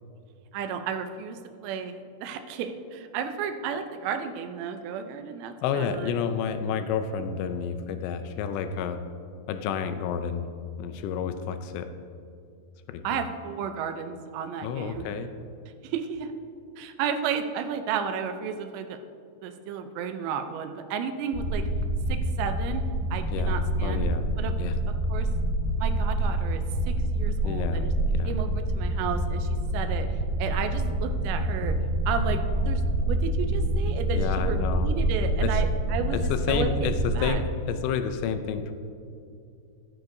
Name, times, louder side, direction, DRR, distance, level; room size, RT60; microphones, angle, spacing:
voice 1, 0.5-6.2 13.0-15.1 15.8-16.3 16.8-19.0 19.4-21.6 22.1-24.1 24.4-24.6 24.9-25.3 25.8-27.9 28.2-31.8 32.1-37.4, right 7 dB, 85° right, 8 dB, 2.8 m, -33 dB
voice 2, 5.6-9.0 9.5-10.5 10.8-11.9 12.9-13.2 14.6-15.3 23.3-24.3 24.6-24.7 27.4-28.4 34.1-34.9 35.4-35.6 36.1-38.7, left 7 dB, 85° left, 9 dB, 2.8 m, -30 dB
sound 1, 21.3-37.3, right 1 dB, 50° left, 2.9 m, -27 dB
14.5 x 9.7 x 2.7 m, 2.6 s
omnidirectional pair, 5.1 m